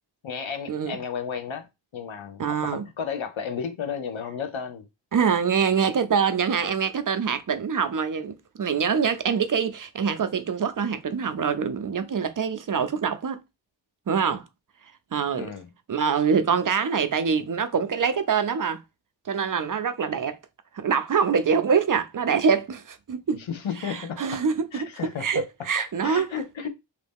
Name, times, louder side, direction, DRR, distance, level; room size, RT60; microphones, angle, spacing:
voice 1, 0.2-1.7 1.9-4.9 15.3-15.7 23.3-24.4 24.7-25.4 25.8-26.7, left 7 dB, 85° left, 0.7 m, -33 dB
voice 2, 2.4-2.8 5.1-13.4 14.1-14.4 15.1-15.5 15.9-18.8 19.3-20.4 20.7-23.4 23.8-24.9 25.2-26.3, right 6 dB, 45° right, 0.5 m, -25 dB
3.1 x 2.7 x 3.4 m
wide cardioid pair, 75°, 45 cm